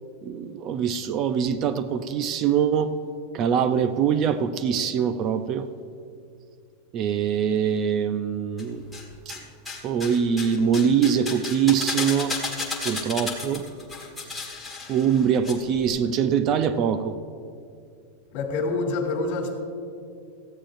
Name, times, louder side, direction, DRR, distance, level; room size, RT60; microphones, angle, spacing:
voice 1, 0.2-2.9 3.3-5.7 6.9-8.9 9.3-9.4 9.8-12.4 12.8-13.6 14.9-17.1, right 7 dB, 30° right, 11 dB, 0.4 m, -23 dB
sound 1, 8.6-9.4 9.7-15.5 15.8-15.9, left 4 dB, 5° left, 1.6 m, -33 dB
voice 2, 18.3-19.5, left 3 dB, 50° left, 1 dB, 2.7 m, -26 dB
17.5 x 15.0 x 2.6 m, 2.4 s
supercardioid pair, 165°, 0 cm